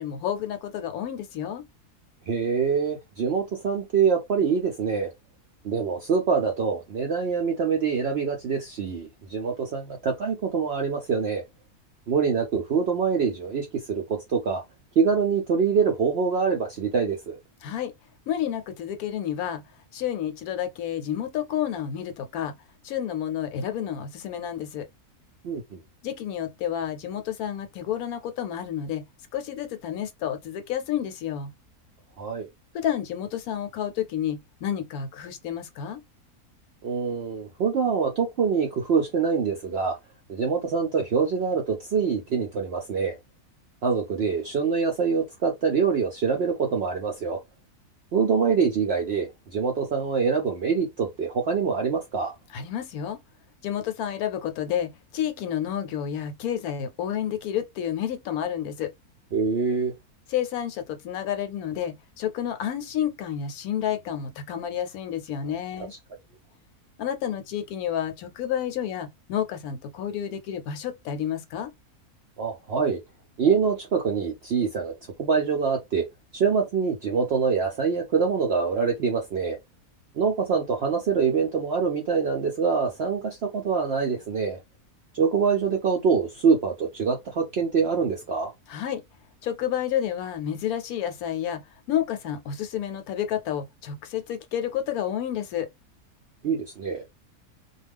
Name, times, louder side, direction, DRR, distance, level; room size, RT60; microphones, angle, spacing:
voice 1, 0.0-1.6 17.6-17.9 18.3-19.6 19.9-22.5 22.8-24.9 26.0-29.0 29.3-31.5 32.7-36.0 52.5-53.2 53.6-58.9 60.3-65.9 67.0-71.7 88.7-89.0 89.4-91.6 91.9-95.7, left 9 dB, 75° left, 1.0 m, -30 dB
voice 2, 2.3-5.1 5.6-11.4 12.1-14.0 14.3-14.6 15.0-17.4 25.4-25.8 32.2-32.5 36.8-40.0 40.3-43.1 43.8-47.4 48.1-52.3 59.3-59.9 72.4-73.0 73.4-74.9 75.2-76.0 76.3-79.6 80.2-84.6 85.1-88.5 96.4-97.0, right 5 dB, 70° right, 0.6 m, -25 dB
2.3 x 2.3 x 3.3 m
omnidirectional pair, 1.6 m